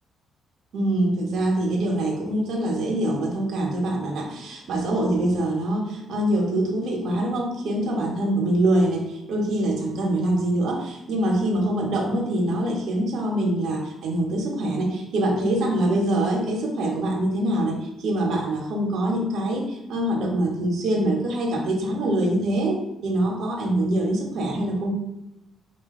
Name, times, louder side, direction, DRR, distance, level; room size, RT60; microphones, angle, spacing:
voice 1, 0.7-22.8 23.0-24.9, right 1 dB, 70° right, 0 dB, 1.1 m, -24 dB
4.1 x 2.7 x 3.7 m, 0.90 s
cardioid pair, 90°, 0 cm